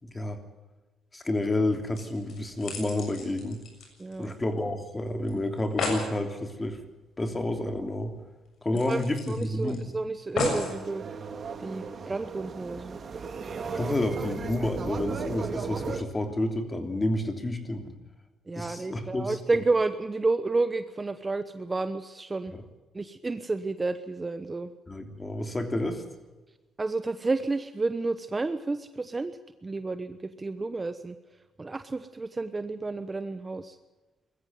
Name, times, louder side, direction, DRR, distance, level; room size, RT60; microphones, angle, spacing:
voice 1, 0.0-0.4 1.1-3.6 4.2-6.8 7.2-8.1 8.6-9.9 13.7-17.9 18.5-19.4 24.9-26.0, left 1 dB, 20° left, 6 dB, 3.2 m, -30 dB
sound 1, 1.9-4.6 4.9-5.0 5.3-5.4 5.6-6.1 7.6-7.7 8.0-8.1 8.7-9.8 10.4-10.8 11.5-11.6, left 4 dB, 65° left, 7.2 m, -34 dB
voice 2, 4.0-4.3 8.9-11.0 11.6-13.0 18.5-22.5 22.9-24.7 26.8-29.4 29.6-31.1 31.6-33.8, right 3 dB, 25° right, 11 dB, 1.0 m, -30 dB
sound 2, 10.3-16.0, right 5 dB, 45° right, 2.2 m, -36 dB
21.0 x 14.5 x 9.4 m, 1.2 s
cardioid pair, 85°, 0 cm